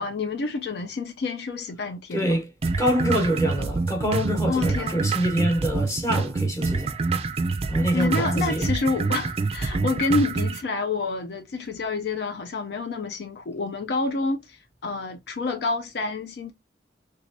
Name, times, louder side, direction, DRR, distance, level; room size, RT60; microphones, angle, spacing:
voice 1, 0.0-2.4 4.5-5.0 7.9-16.5, left 3 dB, 65° left, 0.4 m, -28 dB
voice 2, 2.1-2.5 2.8-6.9 7.7-8.6 9.8-9.9, equal, 20° left, 1.1 m, -25 dB
sound 1, 2.6-10.6, right 4 dB, 35° right, 0.4 m, -26 dB
3.3 x 3.2 x 2.6 m
head